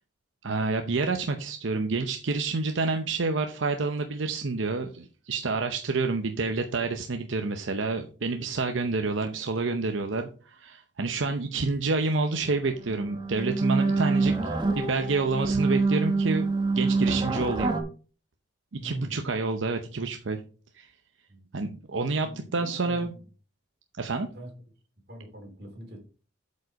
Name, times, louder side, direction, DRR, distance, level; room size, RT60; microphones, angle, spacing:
voice 1, 0.4-14.3 14.7-16.5 16.7-17.8 18.7-20.4 20.7-20.9 21.5-23.1 24.0-24.3, right 3 dB, 85° right, 6 dB, 0.7 m, -28 dB
sound 1, 12.4-12.5 12.8-17.8, right 3 dB, 25° right, 1.0 m, -26 dB
voice 2, 18.8-19.3 21.3-21.4 22.2-23.2 24.3-24.5 25.1-26.0, equal, 55° right, 2 dB, 2.9 m, -43 dB
7.9 x 5.4 x 4.6 m, 0.37 s
head